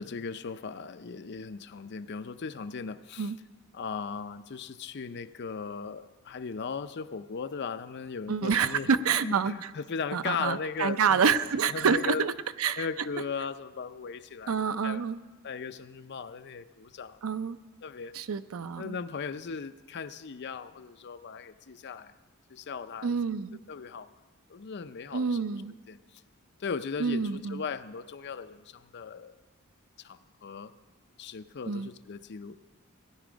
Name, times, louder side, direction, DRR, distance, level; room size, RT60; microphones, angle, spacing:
voice 1, 0.0-3.3 3.7-8.9 9.2-12.3 12.8-15.0 15.4-17.2 17.8-18.2 18.8-22.1 22.5-23.2 23.7-24.1 24.5-25.5 25.9-26.2 26.6-29.4 30.0-30.7 31.2-32.5, left 5 dB, 55° left, 11 dB, 0.5 m, -38 dB
voice 2, 8.3-9.5 10.1-12.3 12.6-12.9 14.5-15.2 17.2-17.6 18.1-19.0 23.0-23.6 25.1-25.7 27.0-27.6 31.7-31.9, right 6 dB, 75° right, 13 dB, 0.5 m, -27 dB
17.0 x 11.0 x 5.1 m, 1.3 s
head